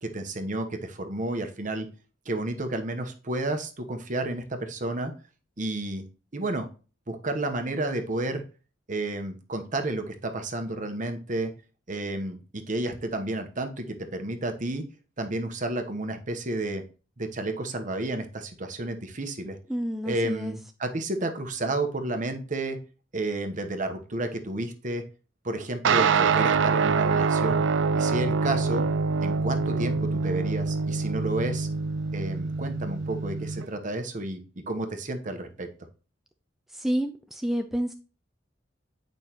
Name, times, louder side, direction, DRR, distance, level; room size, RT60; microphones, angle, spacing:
voice 1, 0.0-1.9 2.3-5.1 5.6-6.0 6.3-6.7 7.1-8.4 8.9-11.5 11.9-14.8 15.2-16.8 17.2-19.6 20.0-22.8 23.1-25.0 25.4-27.6 27.9-28.8 29.2-31.7 32.1-34.4 34.7-35.7, right 2 dB, 40° right, 7 dB, 1.0 m, -31 dB
voice 2, 19.7-20.5 36.7-37.9, equal, ahead, 5 dB, 0.4 m, -29 dB
sound 1, 25.8-33.6, right 5 dB, 70° right, 0.4 m, -25 dB
8.7 x 5.3 x 2.9 m, 0.35 s
head